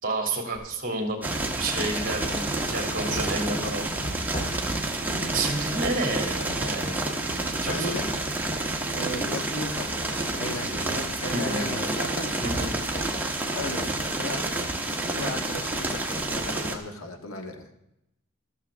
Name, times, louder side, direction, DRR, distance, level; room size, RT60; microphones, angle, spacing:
voice 1, 0.0-3.9 5.3-7.0 7.6-8.0 11.3-11.6 12.4-12.7, right 2 dB, 40° right, 3 dB, 2.6 m, -30 dB
sound 1, 0.5-0.6 1.7-1.8 2.3-7.4 8.0-9.1 9.6-15.7, equal, 30° left, 3.7 m, -40 dB
sound 2, 1.2-16.8, right 2 dB, 10° right, 1.4 m, -29 dB
voice 2, 7.7-8.1 8.9-12.4 13.5-14.6 14.9-17.8, left 2 dB, 75° left, 4 dB, 1.7 m, -36 dB
13.5 x 13.5 x 3.6 m, 0.84 s
head